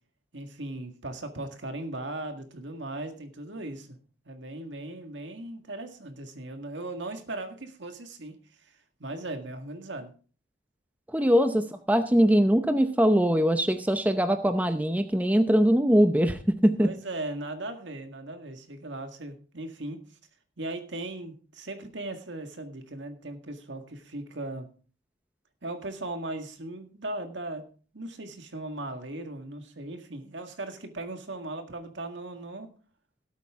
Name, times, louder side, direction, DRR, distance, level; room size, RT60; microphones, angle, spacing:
voice 1, 0.3-4.0 4.3-8.4 8.6-8.7 9.0-10.1 16.8-20.0 20.6-24.7 25.6-27.6 27.9-32.7, right 2 dB, 75° right, 6 dB, 1.8 m, -38 dB
voice 2, 11.1-16.9, equal, 10° right, 8 dB, 0.7 m, -22 dB
17.0 x 8.4 x 3.6 m, 0.40 s
head